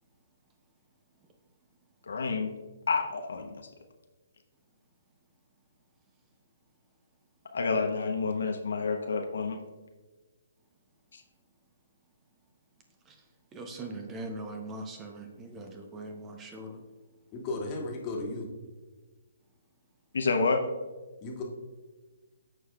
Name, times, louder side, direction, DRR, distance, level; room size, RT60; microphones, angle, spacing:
voice 1, 2.1-2.5 2.9-3.6 7.5-9.6 11.1-11.2 20.1-20.6, left 4 dB, 70° left, 5 dB, 0.8 m, -29 dB
voice 2, 13.5-16.8, right 2 dB, 20° right, 4 dB, 0.8 m, -41 dB
voice 3, 17.3-18.5 21.2-21.4, left 2 dB, 25° left, -1 dB, 1.6 m, -35 dB
13.5 x 4.8 x 2.3 m, 1.3 s
figure-of-eight pair, 135°, 0 cm